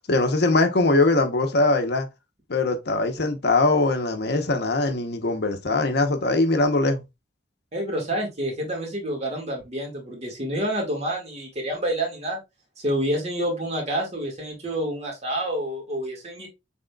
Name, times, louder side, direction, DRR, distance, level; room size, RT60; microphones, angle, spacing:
voice 1, 0.1-2.1 2.5-7.0, left 2 dB, 60° left, 0.8 m, -21 dB
voice 2, 7.7-12.4 12.8-16.5, right 1 dB, 35° right, 1.8 m, -28 dB
6.4 x 3.6 x 2.3 m
head